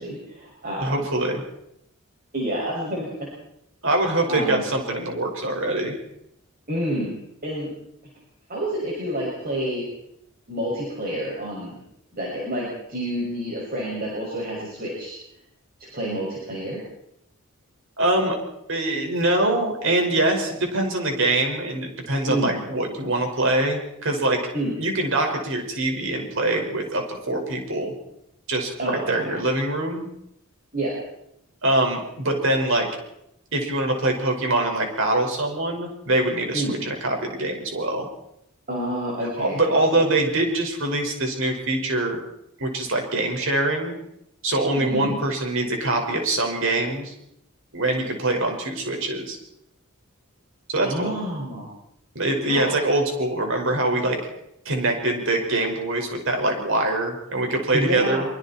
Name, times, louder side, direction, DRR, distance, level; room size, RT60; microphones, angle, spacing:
voice 1, 0.0-1.1 2.3-3.1 4.3-4.6 6.7-7.1 7.4-7.7 8.5-9.9 10.5-11.8 12.1-15.2 15.9-16.8 22.3-22.6 24.5-24.8 28.8-29.2 30.7-30.9 36.5-36.8 38.7-40.0 44.8-45.2 50.8-51.7 52.5-52.8 57.7-58.2, right 1 dB, 45° right, -4 dB, 6.4 m, -28 dB
voice 2, 0.8-1.4 3.8-6.0 18.0-18.4 18.7-24.4 24.8-27.9 28.5-30.0 31.6-32.9 33.5-38.1 39.4-42.2 42.6-43.9 44.4-47.1 47.7-49.4 50.7-51.1 52.2-54.2 54.7-58.3, right 2 dB, 65° right, 2 dB, 5.4 m, -24 dB
25.0 x 24.5 x 4.4 m, 0.79 s
head